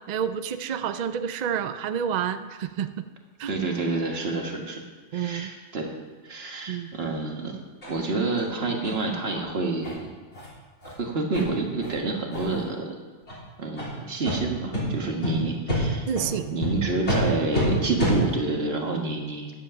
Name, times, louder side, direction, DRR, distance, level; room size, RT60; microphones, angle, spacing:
voice 1, 0.1-3.0 3.4-3.5 5.1-5.5 6.7-6.9 16.1-16.6, right 8 dB, 75° right, 10 dB, 0.4 m, -29 dB
voice 2, 3.5-4.8 5.1-5.9 6.2-7.6 7.9-10.1 11.0-13.0 13.6-16.1 16.5-19.5, right 3 dB, 50° right, 2 dB, 1.7 m, -28 dB
sound 1, 7.8-7.9 8.4-8.5 8.8-9.0 9.3-9.4 9.8-9.9 10.3-10.5 10.8-10.9 11.3-11.4 11.8-11.9 12.3-12.6 13.2-13.4 13.7-13.9 14.2-14.4 14.7-14.8 15.2-15.3 15.7-15.8 16.1-16.3 16.6-16.7 17.0-17.2 17.5-17.6 18.0-18.1, left 1 dB, 55° left, 4.1 m, -28 dB
10.5 x 7.5 x 6.9 m, 1.4 s
omnidirectional pair, 1.4 m